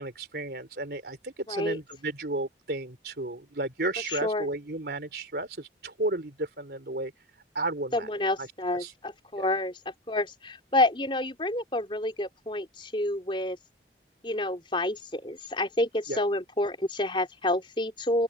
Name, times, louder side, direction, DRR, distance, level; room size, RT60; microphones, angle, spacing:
voice 1, 0.0-7.1 7.5-8.1 8.4-8.5 8.8-8.9 9.4-9.6 16.1-16.2, right 2 dB, 65° right, 3.3 m, -33 dB
voice 2, 4.1-4.5 7.9-9.7 10.1-13.6 14.2-18.2, left 1 dB, 30° left, 3.9 m, -29 dB
open air
head